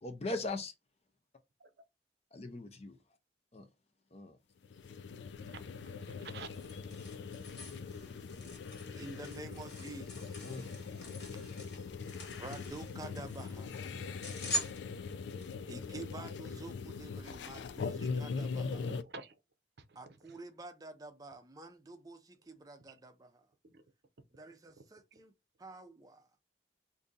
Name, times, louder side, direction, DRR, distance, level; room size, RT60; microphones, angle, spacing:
voice 1, 0.0-0.7 2.3-3.0 3.5-3.7 4.1-4.4 10.4-10.7, left 2 dB, 35° left, 0.5 m, -39 dB
sound 1, 4.6-19.0, left 5 dB, 85° left, 0.4 m, -41 dB
sound 2, 6.0-15.6, equal, 65° left, 1.6 m, -44 dB
voice 2, 6.1-6.5 18.9-19.3 19.9-20.2 22.9-23.0 23.6-23.8, right 4 dB, 65° right, 0.5 m, -49 dB
voice 3, 9.0-10.6 12.4-13.8 15.7-18.9 20.0-23.5 24.3-25.3 25.6-26.3, right 2 dB, 20° right, 0.5 m, -49 dB
2.6 x 2.6 x 3.8 m
head